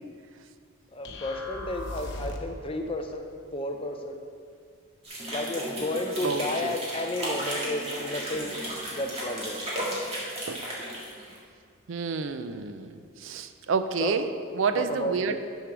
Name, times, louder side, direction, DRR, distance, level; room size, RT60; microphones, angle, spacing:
voice 1, 0.9-3.3 3.5-4.2 5.3-8.6 8.9-9.7 14.0-14.2 14.7-15.4, left 1 dB, 25° left, 4 dB, 0.6 m, -32 dB
sound 1, 1.0-2.6, left 1 dB, 55° left, 0.8 m, -37 dB
sound 2, 5.0-11.4, equal, 30° right, 1.9 m, -34 dB
voice 2, 6.2-6.7 10.5-10.6 11.9-15.4, right 5 dB, 60° right, 10 dB, 0.4 m, -29 dB
6.7 x 6.5 x 6.0 m, 2.2 s
head